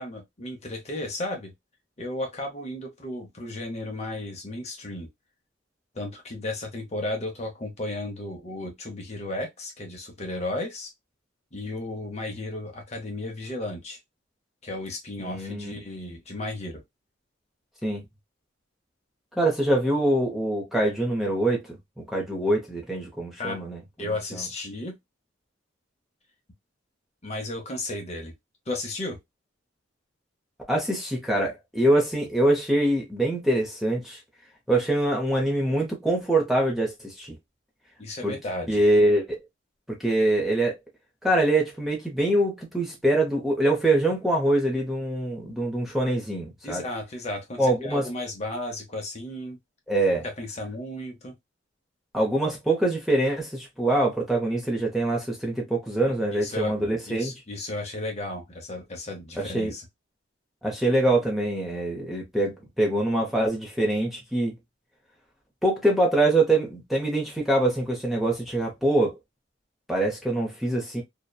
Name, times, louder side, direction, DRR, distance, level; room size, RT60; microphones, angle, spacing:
voice 1, 0.0-1.5 2.0-5.1 5.9-10.9 11.5-14.0 14.6-16.8 23.4-23.6 24.0-25.0 27.2-28.3 28.7-29.2 38.0-38.8 46.6-49.6 50.2-51.4 56.3-56.7 57.1-59.9, left 2 dB, 35° left, 0.7 m, -34 dB
voice 2, 15.2-15.7 17.8-18.0 19.4-21.8 22.1-24.5 30.7-34.2 34.7-37.4 38.2-38.4 38.7-39.4 39.9-40.7 41.2-46.8 47.6-48.1 49.9-50.2 52.1-57.3 59.4-59.7 60.6-64.5 65.6-69.2 69.9-71.0, right 1 dB, ahead, 0.6 m, -24 dB
2.8 x 2.1 x 2.2 m
head